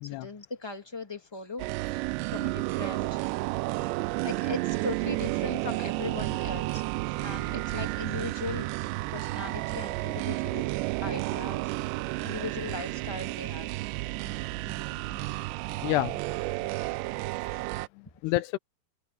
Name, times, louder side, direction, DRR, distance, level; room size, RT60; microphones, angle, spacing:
voice 1, 0.0-2.0 2.3-3.2 4.2-6.8 7.2-10.7 11.0-11.7 12.2-13.7 14.6-14.7 15.0-15.4 16.5-16.6, left 3 dB, 10° left, 1.3 m, -39 dB
sound 1, 1.6-17.9, right 21 dB, 80° right, 2.7 m, -32 dB
voice 2, 15.8-16.2 18.0-18.6, left 18 dB, 85° left, 2.5 m, -30 dB
omnidirectional pair, 5.2 m